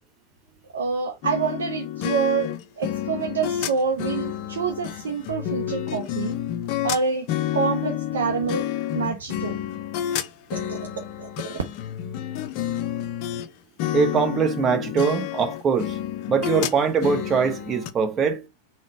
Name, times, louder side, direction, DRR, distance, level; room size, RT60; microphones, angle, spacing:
voice 1, 0.7-6.3 6.8-7.3 7.5-9.6 10.5-10.9 11.2-11.6, right 5 dB, 65° right, 0.5 m, -27 dB
sound 1, 1.2-13.5 13.8-17.9, left 11 dB, 45° left, 0.4 m, -29 dB
voice 2, 13.9-16.0 16.3-18.4, right 6 dB, 25° right, 0.7 m, -22 dB
3.8 x 2.1 x 4.3 m
figure-of-eight pair, 90°, 0 cm